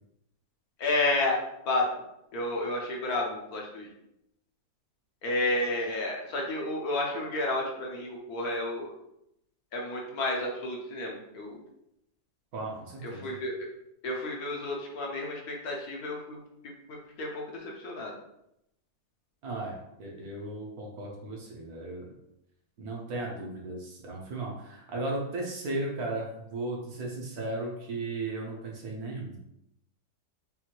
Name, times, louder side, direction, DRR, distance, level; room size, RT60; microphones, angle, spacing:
voice 1, 0.8-1.4 1.6-1.9 2.3-3.9 5.2-8.9 9.7-11.6 13.0-13.5 14.0-16.4 16.9-18.1, left 2 dB, 65° left, -1 dB, 1.3 m, -31 dB
voice 2, 12.5-13.4 19.4-22.1 22.8-29.4, right 2 dB, 65° right, -1 dB, 1.4 m, -36 dB
5.6 x 2.6 x 3.0 m, 0.81 s
omnidirectional pair, 1.8 m